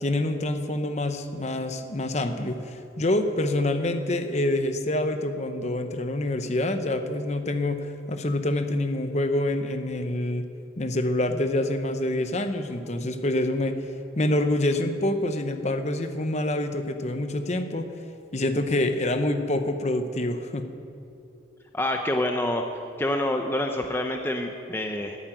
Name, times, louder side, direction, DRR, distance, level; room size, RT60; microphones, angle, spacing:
voice 1, 0.0-10.5 10.8-13.8 14.2-17.9 18.3-20.7, left 1 dB, 35° left, 7 dB, 0.8 m, -26 dB
voice 2, 21.7-22.7 23.0-25.2, left 1 dB, 10° left, 3 dB, 0.6 m, -27 dB
11.5 x 9.2 x 9.0 m, 2.6 s
head